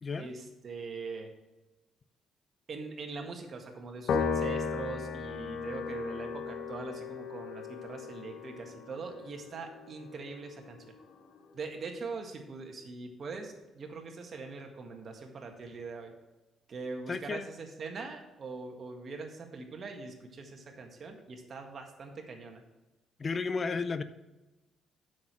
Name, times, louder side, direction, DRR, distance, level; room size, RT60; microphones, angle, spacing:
voice 1, 0.2-1.3 2.7-10.8 11.5-16.1 16.7-22.6, right 4 dB, 50° right, 3 dB, 1.7 m, -42 dB
Piano, 4.1-10.7, left 5 dB, 75° left, 0.9 m, -36 dB
voice 2, 17.1-17.5 23.2-24.0, left 4 dB, 35° left, 12 dB, 0.5 m, -33 dB
7.5 x 6.3 x 6.1 m, 1.1 s
cardioid pair, 90°, 0 cm